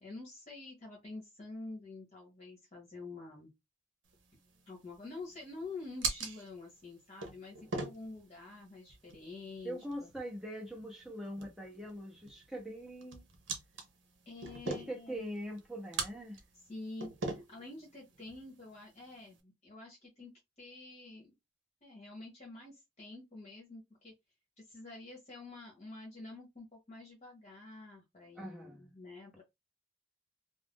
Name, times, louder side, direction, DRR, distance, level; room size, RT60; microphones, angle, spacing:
voice 1, 0.0-3.5 4.7-10.1 14.3-15.3 16.7-21.3 21.8-24.1 24.6-29.4, left 3 dB, 35° left, 0.9 m, -48 dB
sound 1, 4.1-19.4, right 3 dB, 75° right, 0.7 m, -44 dB
voice 2, 9.6-13.3 14.6-16.4 28.3-28.9, equal, ahead, 0.7 m, -42 dB
2.5 x 2.0 x 3.5 m
head